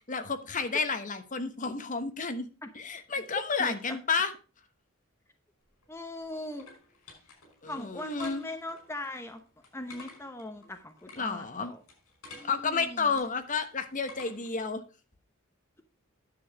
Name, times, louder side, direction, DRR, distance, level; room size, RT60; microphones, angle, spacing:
voice 1, 0.1-2.5 2.7-4.3 7.6-8.4 11.2-11.7 12.4-14.8, left 4 dB, 40° left, 9 dB, 1.1 m, -31 dB
voice 2, 3.6-4.0 5.9-6.7 7.7-9.4 9.7-11.8 12.3-13.2, left 1 dB, 10° left, 6 dB, 0.9 m, -40 dB
sound 1, 5.6-14.6, left 2 dB, 85° left, 5.3 m, -53 dB
10.0 x 7.1 x 4.7 m, 0.33 s
head